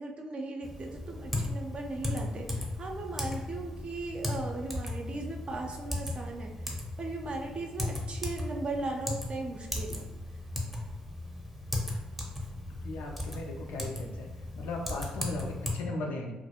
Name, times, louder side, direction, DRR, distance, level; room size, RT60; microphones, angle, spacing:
voice 1, 0.0-6.5 7.0-10.0, right 2 dB, 40° right, 1 dB, 0.5 m, -37 dB
Typing, 0.6-15.7, left 1 dB, ahead, 0.7 m, -37 dB
voice 2, 12.7-14.3 14.6-16.3, left 2 dB, 75° left, 0 dB, 0.4 m, -37 dB
2.3 x 2.0 x 2.7 m, 1.1 s
hypercardioid pair, 45°, 3 cm